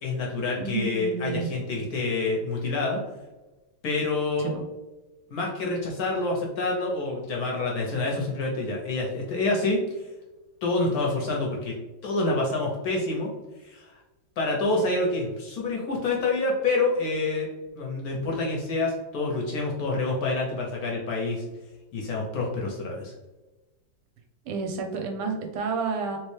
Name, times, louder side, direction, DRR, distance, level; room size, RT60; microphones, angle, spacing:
voice 1, 0.0-3.0 3.8-4.5 5.3-9.8 10.6-11.7 12.0-13.3 13.6-14.0 14.4-17.5 17.8-21.4 21.9-23.1, left 2 dB, 65° left, -2 dB, 1.0 m, -27 dB
voice 2, 0.6-1.5 4.4-4.6 24.5-26.2, right 5 dB, 75° right, 3 dB, 1.1 m, -30 dB
3.1 x 3.1 x 3.1 m, 1.1 s
omnidirectional pair, 2.0 m